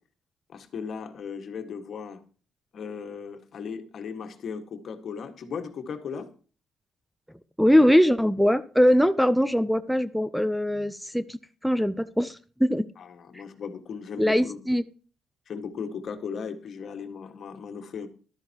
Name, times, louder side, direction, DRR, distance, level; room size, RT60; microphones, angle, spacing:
voice 1, 0.5-2.2 2.7-6.3 13.0-14.6 15.5-18.1, left 6 dB, 60° left, 7 dB, 1.7 m, -37 dB
voice 2, 7.6-12.9 14.2-14.8, equal, ahead, 14 dB, 0.6 m, -22 dB
14.0 x 12.0 x 3.0 m, 0.38 s
cardioid pair, 90°, 0 cm